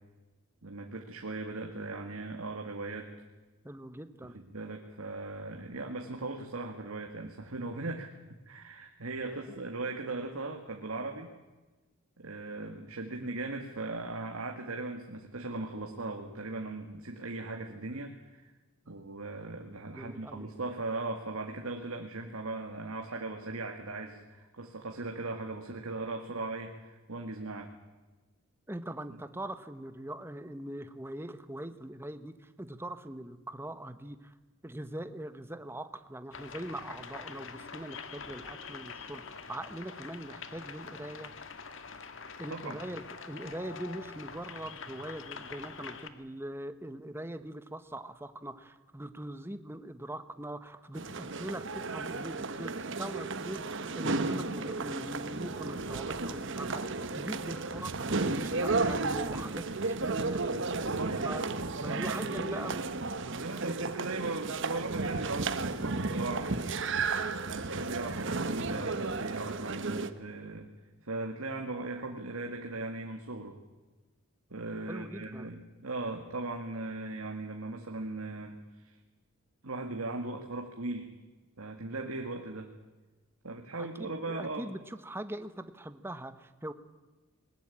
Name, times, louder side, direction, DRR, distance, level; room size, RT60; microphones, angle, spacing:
voice 1, 0.6-3.1 4.2-8.2 8.5-11.3 12.2-18.5 18.9-27.7 42.5-42.8 60.5-61.3 61.8-62.7 63.3-66.5 67.4-70.7 71.0-73.6 74.5-79.0 79.6-81.1 81.6-82.7 83.4-84.7, right 2 dB, 85° right, 3 dB, 2.0 m, -38 dB
voice 2, 3.6-4.4 9.3-9.5 19.9-20.5 28.7-34.3 34.6-41.3 42.4-56.8 57.1-60.5 61.2-61.4 61.8-63.0 74.9-75.5 83.8-86.7, right 1 dB, 10° right, 10 dB, 1.1 m, -42 dB
sound 1, 36.3-46.1, left 5 dB, 65° left, 1.6 m, -45 dB
sound 2, 51.0-70.1, right 3 dB, 60° right, 1.1 m, -33 dB
21.5 x 19.5 x 8.6 m, 1.2 s
head